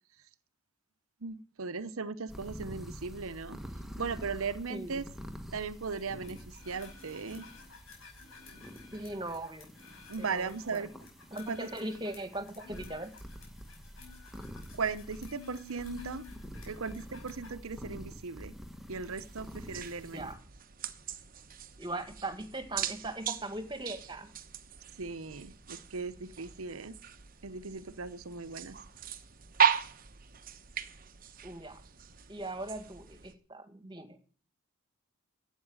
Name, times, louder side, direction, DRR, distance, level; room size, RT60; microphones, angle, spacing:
voice 1, 1.2-3.6 4.0-5.1 5.5-7.4 8.4-8.8 10.1-10.9 11.5-11.7 14.7-16.3 16.7-18.5 18.9-20.3 25.0-27.0 27.4-28.8, right 5 dB, 75° right, 14 dB, 0.9 m, -38 dB
sound 1, 2.3-20.3, equal, ahead, 1.4 m, -48 dB
voice 2, 4.7-5.0 8.9-9.7 10.2-10.9 11.3-13.1 20.1-20.4 21.8-24.3 31.4-31.8 32.3-34.2, right 2 dB, 20° right, 8 dB, 1.9 m, -39 dB
sound 2, 5.9-17.5, left 6 dB, 65° left, 5.7 m, -52 dB
sound 3, 19.1-33.3, right 8 dB, 40° right, 0.9 m, -37 dB
12.0 x 8.4 x 7.9 m, 0.40 s
head